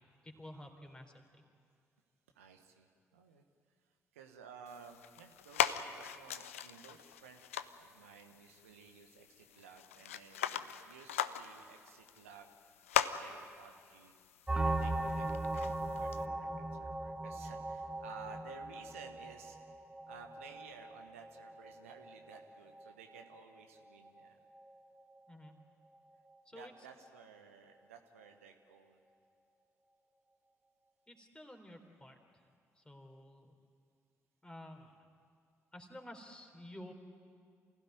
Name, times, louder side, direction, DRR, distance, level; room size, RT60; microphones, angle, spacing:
voice 1, 0.2-1.4 25.3-25.6 26.5-26.7 31.1-32.4 32.8-33.5 34.4-35.0 35.7-36.9, left 1 dB, 15° left, 4 dB, 3.7 m, -52 dB
voice 2, 2.3-3.4 4.1-7.4 7.8-12.5 13.2-14.1 14.5-19.6 20.1-24.4 26.5-29.0, right 6 dB, 80° right, 5 dB, 1.2 m, -55 dB
sound 1, 4.7-16.3, left 10 dB, 80° left, 0.5 m, -40 dB
sound 2, 14.5-23.8 24.0-24.3 24.5-24.7 25.0-25.2, right 2 dB, 10° right, 1.3 m, -39 dB
27.5 x 16.5 x 9.3 m, 2.2 s
figure-of-eight pair, 40°, 7 cm